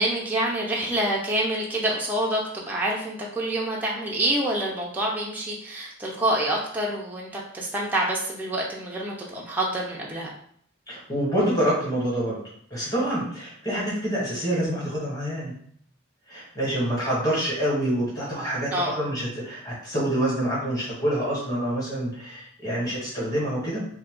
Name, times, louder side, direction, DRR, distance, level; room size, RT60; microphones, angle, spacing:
voice 1, 0.0-10.3 18.7-18.9, right 1 dB, 10° right, -4 dB, 0.4 m, -27 dB
voice 2, 10.9-12.4 12.7-15.5 16.3-23.9, right 1 dB, 20° left, -7 dB, 1.2 m, -27 dB
2.7 x 2.3 x 3.7 m, 0.63 s
head